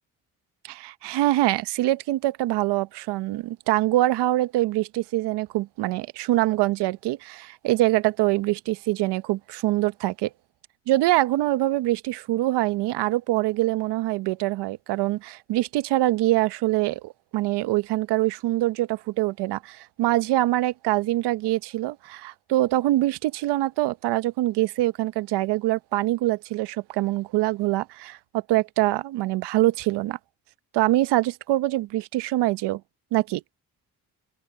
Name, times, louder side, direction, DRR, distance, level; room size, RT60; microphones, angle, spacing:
voice 1, 0.6-10.3 10.9-30.2 30.7-32.8 33.1-33.4, right 16 dB, 85° right, 1.0 m, -24 dB
hypercardioid pair, 40°, 40 cm